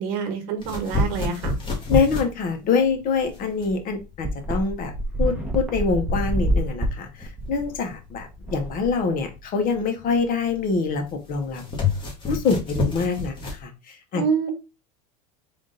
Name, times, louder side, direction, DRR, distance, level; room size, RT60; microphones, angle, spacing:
voice 1, 0.0-1.5 14.1-14.5, right 6 dB, 65° right, 1.2 m, -26 dB
sound 1, 0.6-13.6, left 3 dB, 25° left, 1.3 m, -30 dB
voice 2, 1.9-4.9 5.2-11.6 12.3-14.2, left 4 dB, 40° left, 1.0 m, -25 dB
sound 2, 3.2-3.3 3.6-3.7 4.2-9.4, right 1 dB, 5° right, 0.9 m, -27 dB
3.6 x 2.5 x 3.7 m
supercardioid pair, 110°, 21 cm